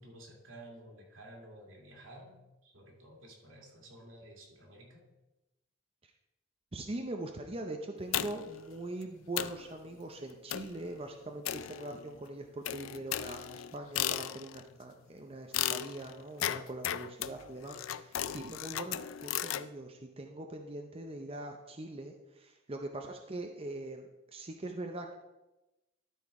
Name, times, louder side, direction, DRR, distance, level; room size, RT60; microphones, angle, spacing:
voice 1, 0.0-5.0, right 1 dB, 80° right, -1 dB, 2.3 m, -53 dB
voice 2, 6.7-24.1 24.3-25.1, right 2 dB, 30° right, 3 dB, 0.6 m, -42 dB
sound 1, 8.1-8.6 9.0-9.1 9.4-9.7 10.5-10.8 11.4-12.2 12.6-14.7 15.5-19.7, left 11 dB, 85° left, 0.4 m, -36 dB
12.5 x 4.5 x 4.7 m, 1.0 s
head